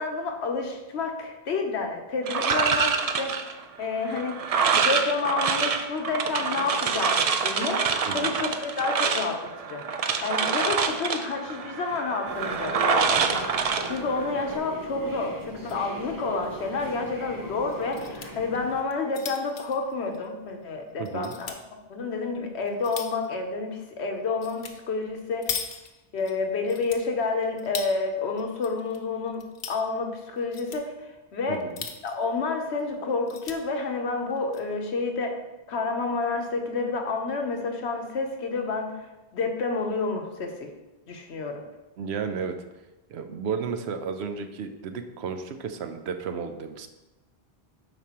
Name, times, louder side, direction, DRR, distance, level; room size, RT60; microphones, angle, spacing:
voice 1, 0.0-3.3 3.8-4.4 4.7-21.5 21.9-25.6 26.1-31.7 32.0-35.4 35.7-39.0 39.3-40.7 41.1-41.6, left 4 dB, 85° left, 4 dB, 1.1 m, -29 dB
sound 1, 2.3-14.6, right 5 dB, 60° right, 0.4 m, -26 dB
voice 2, 8.1-8.4 21.0-21.3 31.5-31.8 42.0-42.5 43.1-46.9, right 6 dB, 80° right, 7 dB, 0.9 m, -33 dB
sound 2, 12.2-18.8, right 1 dB, 20° right, 0.7 m, -39 dB
sound 3, 15.4-15.9 16.2-16.3 16.6-16.7 17.7-18.3 18.8-20.6 21.1-21.6 22.2-23.3 24.4-24.7 25.0-26.3 26.7-27.9 28.4-29.0 29.3-29.8 30.4-30.8 31.5-32.3 32.7-32.8 33.1-33.6 34.3-34.6, left 6 dB, 55° left, 0.7 m, -38 dB
8.0 x 5.2 x 2.9 m, 1.0 s
omnidirectional pair, 1.1 m